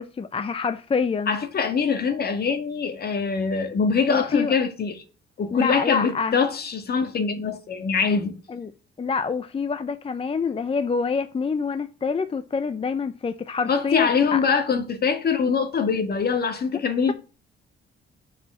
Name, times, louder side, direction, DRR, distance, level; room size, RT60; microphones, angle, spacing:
voice 1, 0.0-1.4 4.1-4.5 5.5-6.4 8.5-8.7 9.0-14.4, left 5 dB, 30° left, 0.6 m, -26 dB
voice 2, 1.3-5.0 5.4-8.4 13.7-17.1, left 5 dB, 50° left, 2.0 m, -23 dB
9.1 x 4.9 x 6.9 m
cardioid pair, 90°, 20 cm